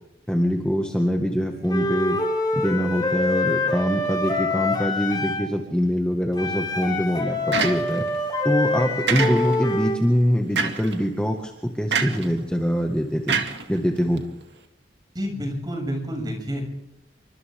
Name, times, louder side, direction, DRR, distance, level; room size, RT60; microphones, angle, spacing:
voice 1, 0.3-2.2 2.6-8.0 8.4-13.4 13.7-14.2, equal, 5° left, 1 dB, 1.9 m, -24 dB
Wind instrument woodwind instrument, 1.7-5.5 6.3-10.0, left 2 dB, 25° left, 4.6 m, -25 dB
sound 1, 7.5-8.2 9.1-9.7 10.6-11.0 11.9-12.3 13.3-14.2, right 5 dB, 75° right, 2.2 m, -26 dB
voice 2, 15.1-16.6, equal, 25° right, 2 dB, 7.0 m, -29 dB
28.5 x 25.0 x 3.8 m, 0.87 s
head